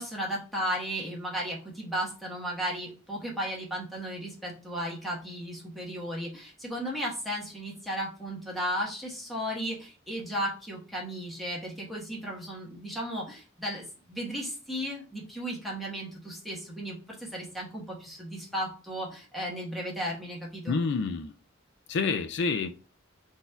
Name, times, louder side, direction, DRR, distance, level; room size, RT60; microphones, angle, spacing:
voice 1, 0.0-20.8, equal, ahead, -4 dB, 1.2 m, -35 dB
voice 2, 20.7-21.3 21.9-22.7, left 4 dB, 60° left, 8 dB, 0.4 m, -28 dB
4.1 x 2.6 x 4.5 m, 0.37 s
head